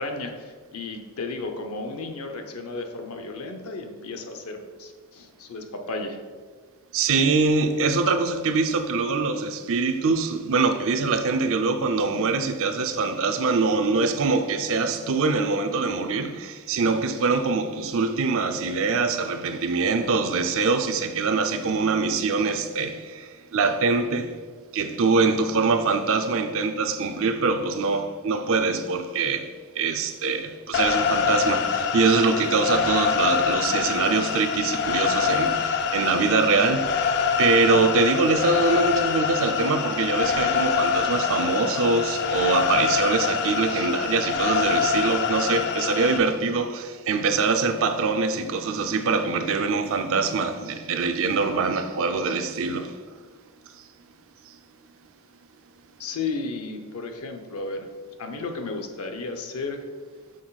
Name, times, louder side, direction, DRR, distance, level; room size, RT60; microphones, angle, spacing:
voice 1, 0.0-6.2 56.0-57.9 58.2-59.8, left 3 dB, 75° left, 0.7 m, -33 dB
voice 2, 6.9-24.4 24.7-37.1 37.4-53.0, right 4 dB, 65° right, 0.5 m, -24 dB
sound 1, 30.7-46.2, left 6 dB, 50° left, 0.4 m, -25 dB
6.4 x 3.9 x 4.0 m
head